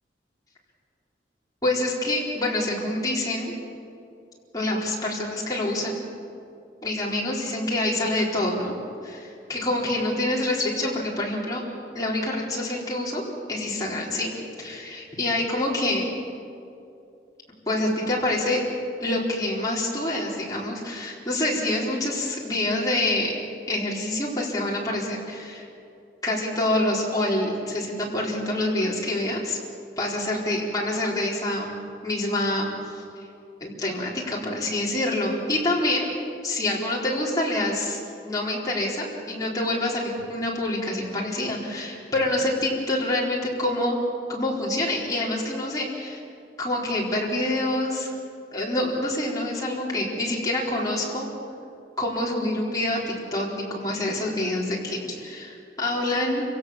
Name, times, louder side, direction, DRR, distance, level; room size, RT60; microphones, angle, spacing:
voice 1, 1.6-3.5 4.5-6.0 6.8-8.8 9.0-11.6 11.9-14.3 14.6-16.1 17.7-18.6 19.0-23.4 23.7-25.7 26.2-29.6 30.0-31.8 32.0-33.3 33.6-36.1 36.4-44.0 44.3-46.2 46.6-48.1 48.5-51.3 52.0-56.4, left 1 dB, 20° left, -4 dB, 4.0 m, -26 dB
29.0 x 17.0 x 7.2 m, 2.6 s
head